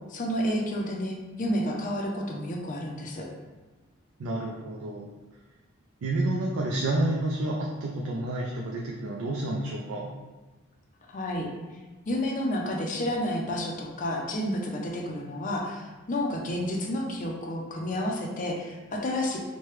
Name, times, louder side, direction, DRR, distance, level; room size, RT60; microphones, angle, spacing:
voice 1, 0.1-3.3 11.1-11.5 12.1-19.4, left 1 dB, 40° left, 0 dB, 0.5 m, -30 dB
voice 2, 4.2-5.1 6.0-10.1, right 2 dB, 85° right, -2 dB, 0.4 m, -29 dB
3.2 x 2.2 x 3.0 m, 1.2 s
head